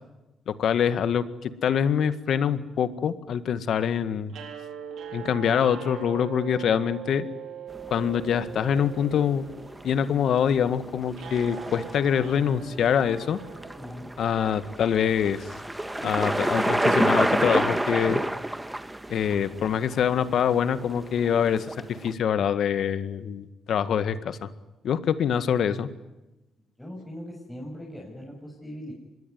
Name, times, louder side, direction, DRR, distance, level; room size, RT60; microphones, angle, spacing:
voice 1, 0.5-4.3 5.1-7.3 7.9-9.5 9.8-13.4 14.2-15.5 16.0-18.2 19.1-24.5 24.8-25.9, left 8 dB, 65° left, 12 dB, 1.8 m, -25 dB
sound 1, 4.3-14.5, right 9 dB, 75° right, 4.1 m, -42 dB
sound 2, 7.7-22.1, right 1 dB, 10° right, 1.6 m, -30 dB
voice 2, 13.8-14.1 26.8-28.9, equal, 10° left, -3 dB, 6.8 m, -40 dB
25.5 x 21.0 x 9.6 m, 1.0 s
cardioid pair, 90°, 0 cm